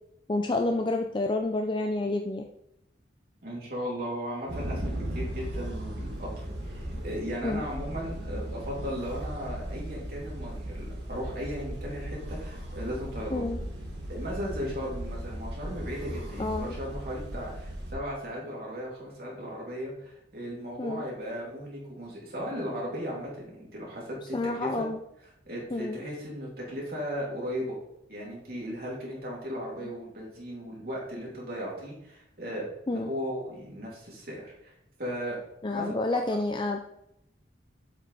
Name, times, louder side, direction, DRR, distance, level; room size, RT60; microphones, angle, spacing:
voice 1, 0.3-2.4 7.4-7.7 13.3-13.6 16.4-16.8 20.8-21.0 24.3-25.0 25.7-26.0 29.8-29.9 32.9-33.1 35.6-36.8, left 2 dB, 25° left, 4 dB, 0.4 m, -29 dB
voice 2, 3.4-13.5 14.1-24.9 25.5-27.8 28.1-34.7 35.0-35.4 35.7-36.4, equal, 55° right, -4 dB, 2.9 m, -36 dB
sound 1, 4.5-17.9, right 1 dB, 75° right, 2.0 m, -37 dB
8.2 x 5.2 x 4.2 m, 0.79 s
head